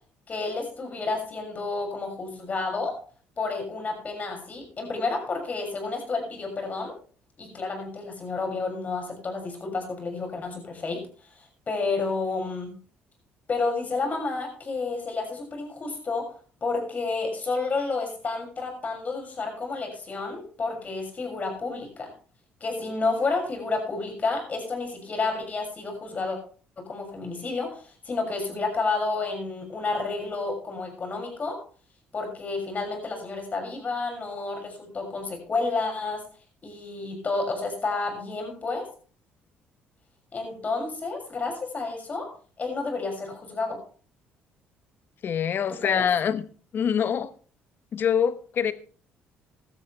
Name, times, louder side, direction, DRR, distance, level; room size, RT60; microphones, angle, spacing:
voice 1, 0.3-2.9 3.4-6.9 7.4-11.0 11.4-12.7 13.5-16.3 16.6-22.1 22.6-26.4 26.8-31.6 32.1-36.2 36.6-38.8 40.3-42.3 42.6-43.8 45.7-46.1, left 3 dB, 35° left, 6.6 m, -30 dB
voice 2, 45.2-46.5 46.7-47.3 47.9-48.7, left 8 dB, 55° left, 1.1 m, -24 dB
16.0 x 12.5 x 3.4 m
supercardioid pair, 85°, 4 cm